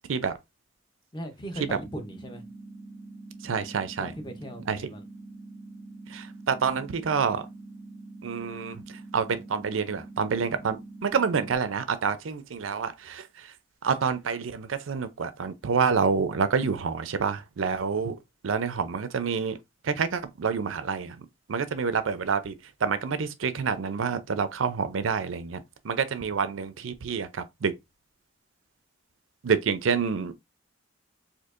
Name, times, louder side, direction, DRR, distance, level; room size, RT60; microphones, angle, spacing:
voice 1, 1.1-2.4 4.0-5.1, equal, 25° left, 0.7 m, -38 dB
sound 1, 1.6-11.6, right 2 dB, 30° right, 0.4 m, -45 dB
voice 2, 3.4-4.1 4.7-4.8 6.1-7.5 8.2-13.5 13.8-18.1 18.4-19.6 19.8-22.5 22.8-27.7 29.4-30.3, right 5 dB, 85° right, 0.5 m, -28 dB
4.4 x 2.7 x 2.5 m
head